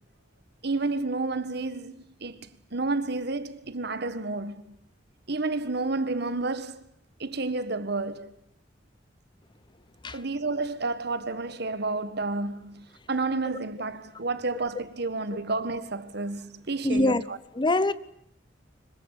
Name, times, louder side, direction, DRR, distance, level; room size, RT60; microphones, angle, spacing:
voice 1, 0.6-4.8 5.3-6.8 7.2-8.3 10.1-17.2, right 3 dB, 60° right, 1.7 m, -30 dB
voice 2, 16.8-17.2 17.5-17.9, left 2 dB, 25° left, 1.0 m, -24 dB
25.5 x 23.0 x 8.3 m
head